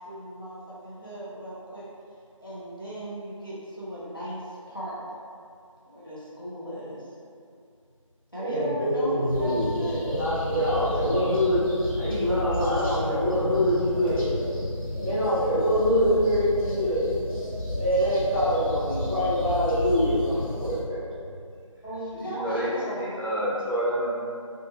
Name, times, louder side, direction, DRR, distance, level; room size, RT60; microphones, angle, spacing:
voice 1, 0.0-1.9 2.4-5.0 5.9-7.1 8.3-10.1 21.8-23.2, right 1 dB, 40° left, -9 dB, 0.5 m, -36 dB
voice 2, 8.4-9.7 10.1-11.6 12.0-14.3 15.0-17.1 17.7-21.0, equal, 5° left, -25 dB, 1.1 m, -24 dB
sound 1, 9.3-20.8, left 1 dB, 85° left, 1.0 m, -32 dB
voice 3, 22.1-24.1, equal, 40° right, -8 dB, 0.6 m, -29 dB
2.8 x 2.3 x 2.6 m, 2.3 s
figure-of-eight pair, 170°, 17 cm